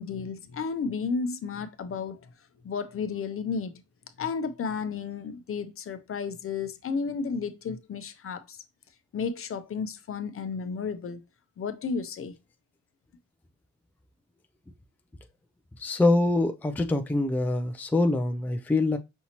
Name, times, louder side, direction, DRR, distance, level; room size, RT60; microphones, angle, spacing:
voice 1, 0.0-2.2 2.6-3.8 4.2-8.6 9.1-11.2 11.6-12.3, left 5 dB, 45° left, 0.7 m, -32 dB
voice 2, 15.8-19.0, left 2 dB, 5° left, 0.4 m, -24 dB
5.4 x 2.8 x 2.9 m
cardioid pair, 90°, 30 cm